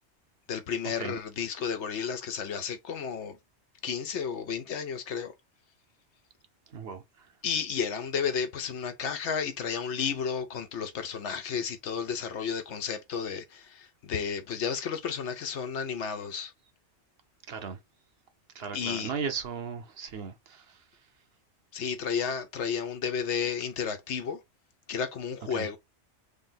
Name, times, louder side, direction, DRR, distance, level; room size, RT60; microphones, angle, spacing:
voice 1, 0.5-3.4 3.8-5.3 7.4-16.5 18.7-19.1 21.7-24.4 24.9-25.8, left 6 dB, 75° left, 1.1 m, -32 dB
voice 2, 6.7-7.0 17.5-17.8 18.5-20.8 25.5-25.7, right 6 dB, 65° right, 0.9 m, -36 dB
3.4 x 2.7 x 3.8 m
omnidirectional pair, 1.2 m